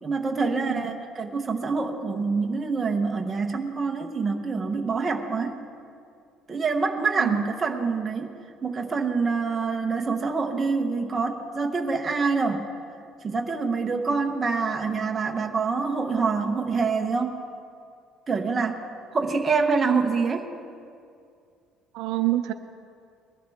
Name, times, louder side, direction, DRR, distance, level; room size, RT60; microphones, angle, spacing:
voice 1, 0.0-5.6 6.5-8.3 8.6-12.7 13.2-17.4 18.3-18.8 19.1-20.5, right 4 dB, 20° right, 3 dB, 0.9 m, -26 dB
voice 2, 21.9-22.5, right 16 dB, 75° right, 8 dB, 0.6 m, -27 dB
21.0 x 12.0 x 3.6 m, 2.3 s
cardioid pair, 170°, 0 cm